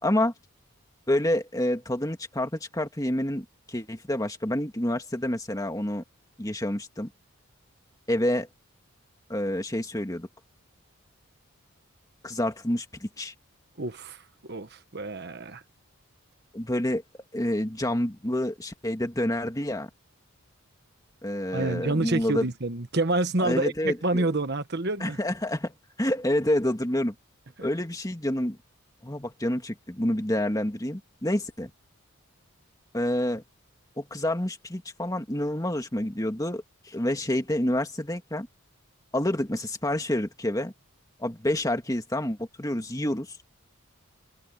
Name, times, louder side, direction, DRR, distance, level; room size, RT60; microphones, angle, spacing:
voice 1, 0.0-0.3 1.1-6.0 6.4-7.1 8.1-8.5 9.3-10.3 12.2-13.3 16.5-17.0 17.3-19.9 21.2-22.5 23.4-24.3 25.0-25.7 26.0-27.1 27.6-28.6 29.0-31.7 32.9-33.4 34.0-38.5 39.1-40.7 41.2-43.4, left 1 dB, 15° left, 2.0 m, -28 dB
voice 2, 13.8-15.6 21.5-25.2, right 2 dB, 50° right, 1.3 m, -28 dB
head